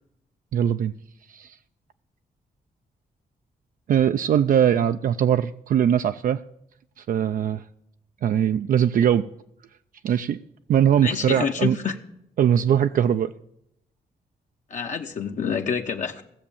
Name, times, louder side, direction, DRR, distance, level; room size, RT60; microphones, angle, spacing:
voice 1, 0.5-0.9 1.3-1.6 3.9-6.4 7.0-7.6 8.2-9.3 10.0-10.4 10.7-11.7 12.4-13.3, right 9 dB, 60° right, 9 dB, 0.4 m, -21 dB
voice 2, 11.0-12.0 14.7-16.2, left 6 dB, 50° left, 3 dB, 0.8 m, -27 dB
16.5 x 7.2 x 7.1 m, 0.77 s
cardioid pair, 130°, 16 cm